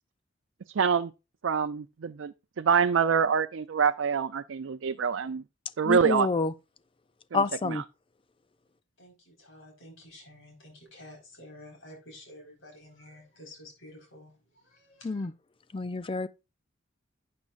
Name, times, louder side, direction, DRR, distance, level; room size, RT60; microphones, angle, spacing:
voice 1, 0.8-1.1 1.4-5.4 5.8-6.3 7.3-7.8, right 6 dB, 75° right, 0.5 m, -26 dB
voice 2, 5.9-6.5 7.3-7.8 15.0-15.3 15.7-16.3, left 3 dB, 25° left, 0.5 m, -28 dB
voice 3, 9.0-15.3, left 1 dB, 85° left, 4.5 m, -51 dB
12.0 x 8.5 x 2.5 m
head